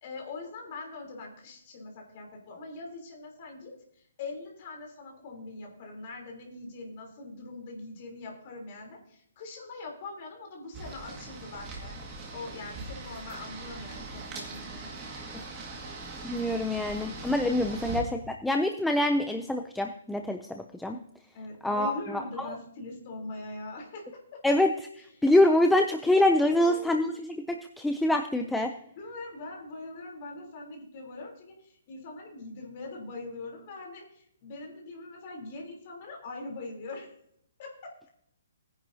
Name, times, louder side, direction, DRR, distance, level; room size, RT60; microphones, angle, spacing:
voice 1, 0.0-3.7 4.2-12.0 12.3-14.9 17.7-17.8 21.3-24.4 25.2-25.3 26.5-27.0 29.0-37.1 37.6-37.9, left 3 dB, 25° left, 0 dB, 3.3 m, -42 dB
sound 1, 10.7-18.0, right 3 dB, 15° right, 1.8 m, -41 dB
voice 2, 16.2-21.0 21.6-21.9 22.4-22.5 24.4-28.7, left 1 dB, ahead, 5 dB, 0.4 m, -25 dB
19.0 x 10.5 x 2.7 m, 0.69 s
hypercardioid pair, 180°, 0 cm